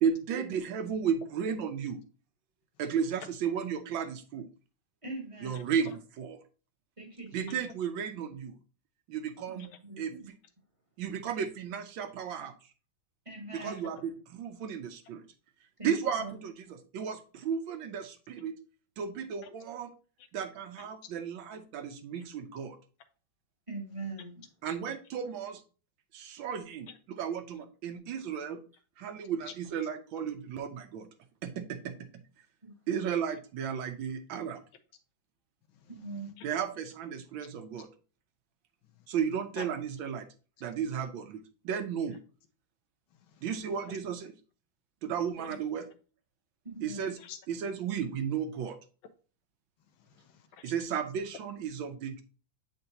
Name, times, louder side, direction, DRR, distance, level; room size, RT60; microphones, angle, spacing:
voice 1, 0.0-2.0 2.8-4.5 5.4-6.4 7.3-8.5 9.1-9.7 10.0-10.4 11.0-12.5 13.5-15.2 15.8-18.5 19.0-19.9 20.3-22.8 24.6-25.6 26.1-28.6 29.0-31.1 31.4-31.9 32.9-34.6 36.4-37.9 39.1-40.3 40.6-42.2 43.4-44.3 45.0-45.9 46.8-47.2 47.5-48.8 50.6-52.2, right 7 dB, 75° right, 8 dB, 1.4 m, -34 dB
voice 2, 5.0-5.7 7.0-7.6 9.5-10.3 13.2-13.8 15.8-16.4 23.7-24.4 32.6-32.7 35.9-36.3 45.4-45.6 46.6-47.1, right 3 dB, 20° right, 1 dB, 1.0 m, -42 dB
voice 3, 5.5-6.0 13.8-13.9 20.2-20.3 26.9-27.0 29.4-29.5 35.7-36.5 38.8-39.1 39.6-39.7 43.1-43.5 43.8-44.0 45.4-45.6 47.2-47.4 49.9-50.7, left 8 dB, 80° left, 9 dB, 1.6 m, -49 dB
7.8 x 4.4 x 2.8 m, 0.36 s
omnidirectional pair, 2.2 m